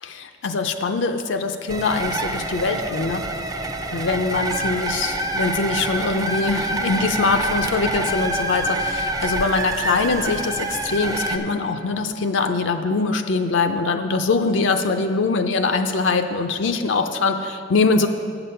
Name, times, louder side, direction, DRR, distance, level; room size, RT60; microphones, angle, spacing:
voice 1, 0.0-3.3 3.9-18.1, left 4 dB, 70° left, 7 dB, 0.4 m, -23 dB
sound 1, 1.7-11.4, right 2 dB, 20° right, 0.4 m, -26 dB
8.0 x 6.9 x 5.6 m, 2.4 s
head